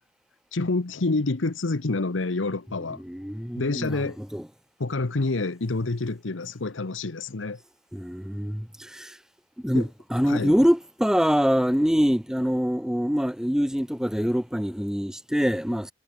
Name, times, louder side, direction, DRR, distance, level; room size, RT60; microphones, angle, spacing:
voice 1, 0.5-3.0 3.6-4.2 4.8-7.6 9.7-9.9 10.3-10.5, left 3 dB, 90° left, 1.0 m, -27 dB
voice 2, 2.8-4.5 7.9-9.2 9.6-15.9, equal, 5° right, 0.9 m, -25 dB
head